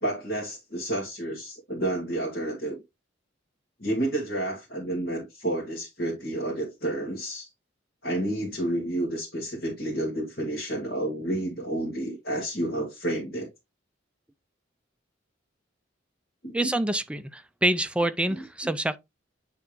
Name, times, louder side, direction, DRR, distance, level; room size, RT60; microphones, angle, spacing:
voice 1, 0.0-2.8 3.8-7.5 8.0-13.5 16.4-16.7 18.3-18.7, right 1 dB, 60° left, 1.9 m, -30 dB
voice 2, 16.5-19.0, right 1 dB, 5° right, 0.4 m, -26 dB
8.8 x 3.5 x 3.0 m
head